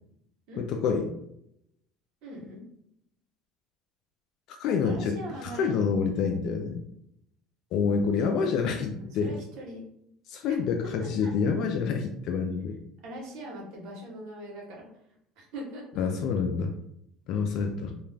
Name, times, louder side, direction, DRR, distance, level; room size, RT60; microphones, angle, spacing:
voice 1, 0.6-1.1 4.5-6.8 7.7-9.4 10.3-12.8 16.0-16.7 17.3-17.9, left 5 dB, 65° left, 3 dB, 0.3 m, -27 dB
voice 2, 2.2-2.6 4.8-5.8 9.0-9.8 10.5-10.6 13.0-14.9 15.4-16.0, right 1 dB, 70° right, -2 dB, 1.0 m, -41 dB
2.3 x 2.1 x 3.2 m, 0.76 s
supercardioid pair, 105°, 0 cm